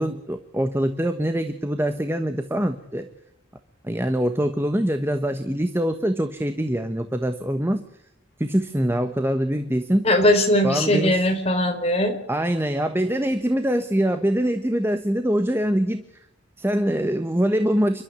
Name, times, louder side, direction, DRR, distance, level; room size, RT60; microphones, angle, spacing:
voice 1, 0.0-3.1 3.8-7.8 8.4-10.1 10.6-11.3 12.3-16.0 16.6-18.0, equal, 10° right, 7 dB, 1.2 m, -24 dB
voice 2, 10.0-12.1, left 1 dB, 30° left, 5 dB, 4.2 m, -19 dB
29.5 x 12.5 x 8.3 m, 0.80 s
head